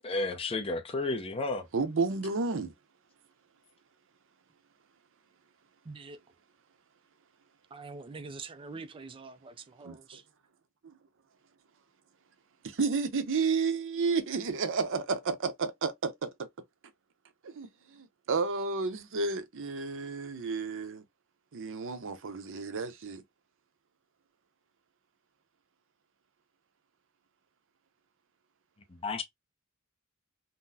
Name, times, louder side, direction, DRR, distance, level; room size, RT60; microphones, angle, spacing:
voice 1, 0.0-1.7 29.0-29.2, left 3 dB, 25° left, 0.6 m, -32 dB
voice 2, 1.7-2.7 9.8-10.2 10.8-10.9 12.6-16.3 17.4-21.0 21.5-23.2, right 4 dB, 60° right, 0.7 m, -31 dB
voice 3, 5.8-6.2 7.7-10.2, right 4 dB, 25° right, 0.4 m, -45 dB
3.9 x 2.1 x 2.7 m
head